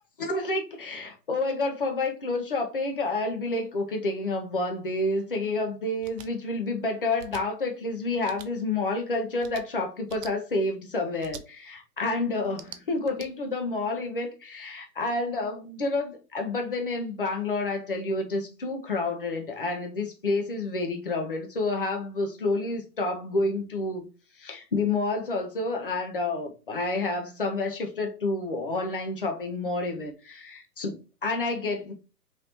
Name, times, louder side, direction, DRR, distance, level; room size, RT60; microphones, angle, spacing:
voice 1, 0.2-24.1 24.4-31.9, left 2 dB, 35° left, 0.5 m, -29 dB
sound 1, 6.0-6.3 7.2-7.4 8.2-8.5 9.4-9.6 10.1-10.3 11.2-11.4 12.4-13.3, right 7 dB, 75° right, 0.6 m, -44 dB
3.3 x 2.7 x 2.8 m
hypercardioid pair, 170°, 48 cm